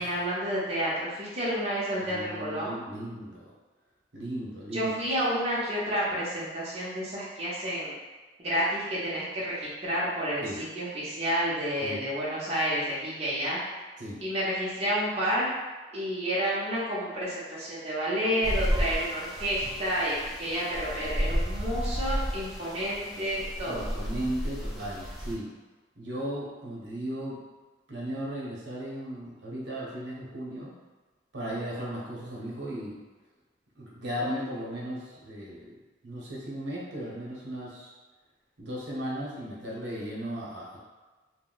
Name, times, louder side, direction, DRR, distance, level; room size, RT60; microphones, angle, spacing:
voice 1, 0.0-2.8 4.7-7.9 8.4-13.6 14.2-15.5 15.9-23.9, equal, 35° right, -8 dB, 0.7 m, -30 dB
voice 2, 2.0-3.5 4.1-4.9 10.4-10.6 11.8-12.0 14.0-14.2 23.7-25.5 26.0-27.4 27.9-30.7 31.3-33.0 33.8-35.8 36.0-37.9 38.6-40.8, equal, 70° right, -5 dB, 0.8 m, -36 dB
sound 1, 18.4-25.3, equal, ahead, 0.4 m, -32 dB
2.6 x 2.1 x 3.8 m, 1.3 s
head